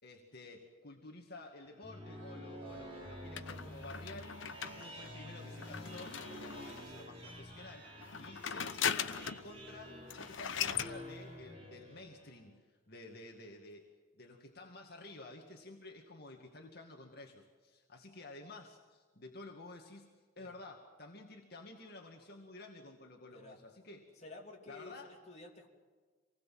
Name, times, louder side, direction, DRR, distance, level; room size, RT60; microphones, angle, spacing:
voice 1, 0.0-13.8 14.1-20.1 20.4-24.1 24.7-25.1, left 2 dB, 55° left, 1 dB, 2.2 m, -52 dB
sound 1, 1.6-12.4, equal, 30° right, 4.6 m, -49 dB
sound 2, 3.4-7.0 8.0-9.5 9.8-9.9 10.1-10.9, left 7 dB, 75° left, 1.0 m, -39 dB
voice 2, 23.3-23.6 24.1-25.7, left 2 dB, 35° left, -1 dB, 3.0 m, -52 dB
26.5 x 20.0 x 7.7 m, 1.5 s
head